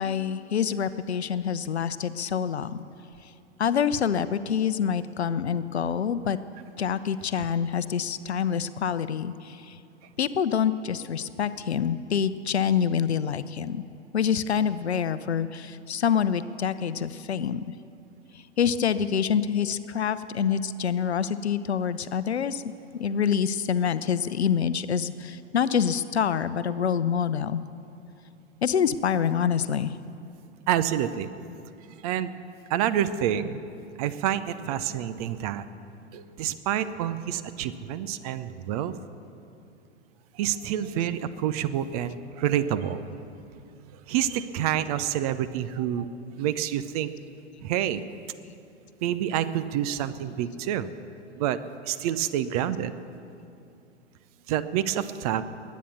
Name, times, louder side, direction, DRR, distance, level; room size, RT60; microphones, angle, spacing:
voice 1, 0.0-2.8 3.6-6.4 6.8-9.8 10.2-13.8 14.1-17.6 18.6-22.6 23.0-27.6 28.6-29.9, left 7 dB, 65° left, 14 dB, 0.7 m, -26 dB
voice 2, 30.7-31.3 31.9-32.3 32.7-33.6 34.0-35.7 36.1-38.9 40.3-43.1 43.9-46.1 46.4-47.1 47.6-48.0 49.0-50.9 51.4-51.6 51.8-52.9 54.5-55.4, right 10 dB, 35° right, 13 dB, 0.7 m, -28 dB
21.0 x 9.4 x 7.0 m, 2.6 s
figure-of-eight pair, 100°, 34 cm